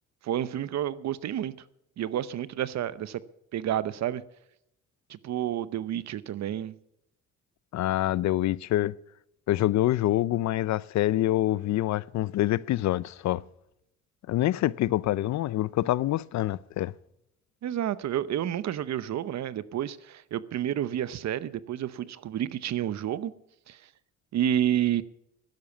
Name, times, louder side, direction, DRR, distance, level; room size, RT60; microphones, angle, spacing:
voice 1, 0.2-1.5 2.0-3.2 3.5-4.2 5.1-6.7 17.6-23.3 23.7-23.8 24.3-25.0, right 11 dB, 65° right, 0.8 m, -30 dB
voice 2, 7.7-9.0 9.5-13.4 14.3-16.9, left 14 dB, 65° left, 0.5 m, -26 dB
12.0 x 10.5 x 7.1 m
cardioid pair, 90°, 30 cm